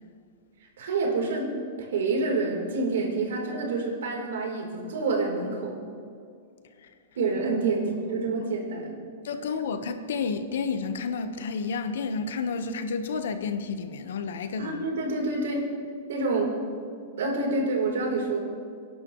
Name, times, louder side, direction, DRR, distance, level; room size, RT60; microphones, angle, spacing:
voice 1, 0.8-1.5 1.9-5.7 7.2-9.0 14.6-15.7 16.1-16.5 17.2-18.4, right 3 dB, 80° right, 0 dB, 3.9 m, -27 dB
voice 2, 9.2-14.9, left 5 dB, 75° left, 8 dB, 1.2 m, -31 dB
27.5 x 11.0 x 3.2 m, 2.3 s
supercardioid pair, 170°, 0 cm